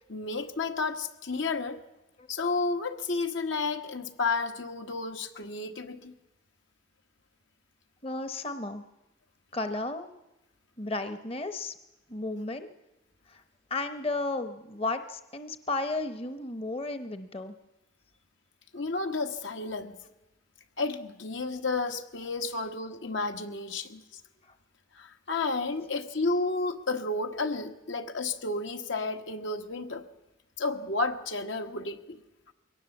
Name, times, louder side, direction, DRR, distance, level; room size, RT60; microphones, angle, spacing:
voice 1, 0.1-1.8 2.3-6.1 18.7-20.0 20.8-24.0 24.9-30.0 30.6-32.2, left 3 dB, 80° left, 6 dB, 1.5 m, -31 dB
voice 2, 8.0-8.8 9.5-10.1 10.8-11.7 12.1-12.7 13.3-13.4 13.7-17.5, left 2 dB, 30° left, 9 dB, 0.8 m, -33 dB
22.0 x 18.0 x 7.2 m, 1.0 s
head